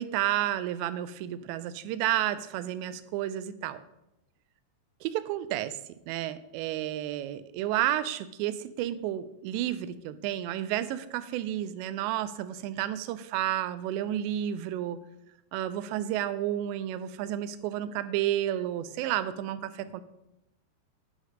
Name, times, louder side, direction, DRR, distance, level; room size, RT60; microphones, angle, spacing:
voice 1, 0.0-3.8 5.0-15.0 15.5-20.0, right 12 dB, 85° right, 14 dB, 2.8 m, -31 dB
11.0 x 4.1 x 5.3 m, 0.85 s
omnidirectional pair, 5.0 m